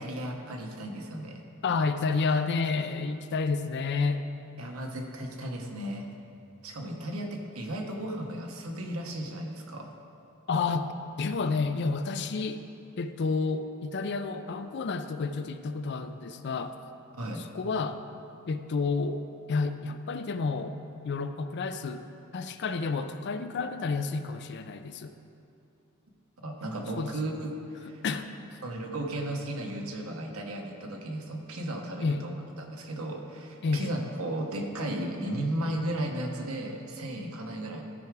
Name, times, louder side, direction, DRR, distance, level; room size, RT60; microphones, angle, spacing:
voice 1, 0.0-1.4 1.7-1.8 2.4-2.5 4.6-6.1 6.6-9.9 17.1-17.4 26.4-28.0 28.6-32.3 32.6-37.8, right 1 dB, 80° right, 2 dB, 1.0 m, -35 dB
voice 2, 1.6-4.2 10.5-10.9 11.2-12.6 13.0-16.8 17.5-18.0 18.5-20.8 21.0-22.0 22.3-25.1 27.0-27.1 28.0-28.3 32.0-32.2 33.6-33.9, left 4 dB, 55° left, 9 dB, 0.4 m, -30 dB
13.5 x 4.8 x 4.7 m, 2.7 s
head